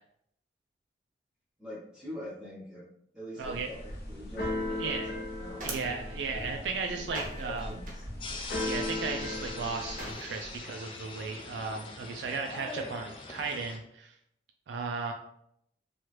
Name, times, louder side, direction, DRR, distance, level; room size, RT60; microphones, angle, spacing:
voice 1, 1.6-2.8 3.1-5.1 5.4-5.6 6.3-6.5 7.0-8.0, equal, 5° right, -8 dB, 0.7 m, -44 dB
Keyboard (musical), 3.4-10.1, left 2 dB, 65° left, 0.8 m, -37 dB
voice 2, 3.4-3.7 4.8-5.1 5.6-7.7 8.7-14.1 14.7-15.1, right 4 dB, 90° right, 3 dB, 0.3 m, -35 dB
sound 1, 5.0-10.6, right 2 dB, 50° right, 0.6 m, -45 dB
sound 2, 8.2-13.8, left 3 dB, 30° left, 0.3 m, -42 dB
2.9 x 2.4 x 3.0 m, 0.71 s
head